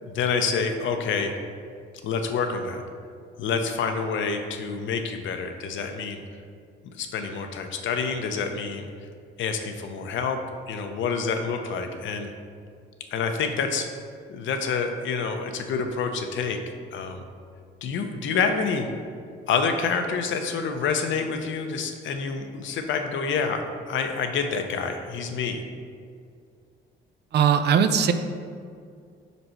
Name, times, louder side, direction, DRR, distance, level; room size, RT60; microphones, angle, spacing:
voice 1, 0.0-1.3 2.0-2.8 3.4-6.2 6.8-8.9 9.4-10.4 10.7-12.3 13.1-13.9 14.3-16.6 16.9-17.2 17.8-18.9 19.5-23.6 23.9-25.6, left 5 dB, 70° left, 6 dB, 0.6 m, -27 dB
voice 2, 27.3-28.1, right 7 dB, 55° right, 9 dB, 0.4 m, -19 dB
5.2 x 4.0 x 4.4 m, 2.2 s
cardioid pair, 90°, 20 cm